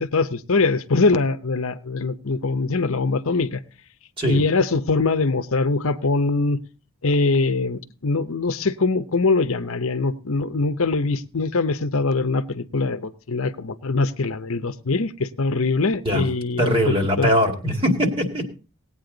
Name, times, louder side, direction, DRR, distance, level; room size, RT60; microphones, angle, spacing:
voice 1, 0.0-3.6 4.2-6.6 7.0-17.3, left 3 dB, 65° left, 10 dB, 0.8 m, -22 dB
voice 2, 16.6-18.4, equal, 25° right, 4 dB, 2.3 m, -21 dB
18.5 x 8.9 x 3.9 m, 0.34 s
head